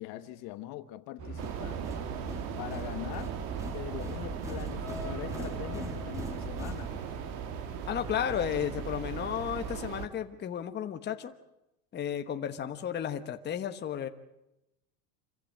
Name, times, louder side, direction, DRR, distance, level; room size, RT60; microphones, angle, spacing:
voice 1, 0.0-1.8 2.6-3.3 3.6-6.9, left 15 dB, 50° left, 1.3 m, -42 dB
sound 1, 1.2-9.2, right 2 dB, 30° right, 5.3 m, -44 dB
sound 2, 1.4-7.4, right 1 dB, 5° right, 2.2 m, -42 dB
sound 3, 1.4-10.1, right 8 dB, 65° right, 2.3 m, -38 dB
voice 2, 7.9-11.3 11.9-14.1, left 9 dB, 25° left, 1.2 m, -33 dB
26.5 x 15.0 x 9.3 m
supercardioid pair, 140°, 45 cm